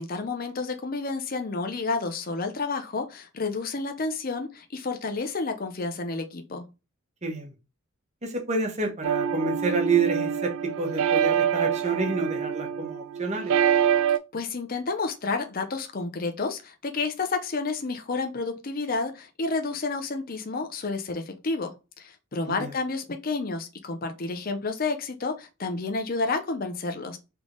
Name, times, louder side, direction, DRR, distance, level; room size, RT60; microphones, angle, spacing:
voice 1, 0.0-6.6 14.1-27.2, left 3 dB, 40° left, 0.6 m, -30 dB
voice 2, 7.2-7.5 8.2-13.5 22.4-22.7, right 3 dB, 30° right, 1.1 m, -29 dB
sound 1, 9.0-14.2, right 8 dB, 75° right, 0.4 m, -25 dB
3.5 x 3.3 x 3.8 m
head